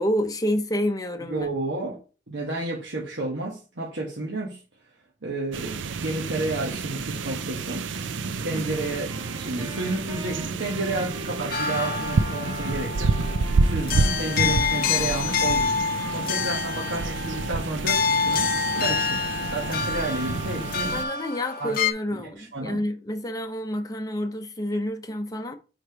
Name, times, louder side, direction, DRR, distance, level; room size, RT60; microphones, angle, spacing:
voice 1, 0.0-1.5 8.5-8.7 20.9-25.5, equal, 20° left, 0.7 m, -28 dB
voice 2, 1.2-2.0 2.3-4.6 5.2-7.8 8.4-13.2 13.6-15.7 16.1-18.5 18.8-21.0 21.6-21.7 22.1-22.8, right 2 dB, 70° right, 1.3 m, -31 dB
sound 1, 5.5-21.0, right 3 dB, 85° right, 0.5 m, -29 dB
Wind instrument woodwind instrument, 8.6-16.8, right 1 dB, 25° right, 0.6 m, -43 dB
sound 2, 11.5-21.9, left 6 dB, 50° left, 0.6 m, -27 dB
4.8 x 4.4 x 4.6 m
head